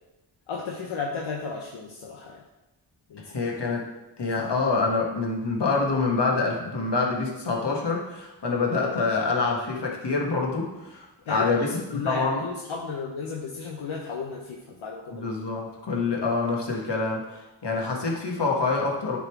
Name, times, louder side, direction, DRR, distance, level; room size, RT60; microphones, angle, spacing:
voice 1, 0.5-2.4 3.1-3.3 4.2-4.4 11.3-15.3, left 4 dB, 80° left, -1 dB, 0.9 m, -34 dB
voice 2, 3.3-3.9 4.2-12.4 15.1-19.2, left 3 dB, 60° left, -1 dB, 1.8 m, -26 dB
9.5 x 3.7 x 4.7 m, 1.0 s
cardioid pair, 50°, 47 cm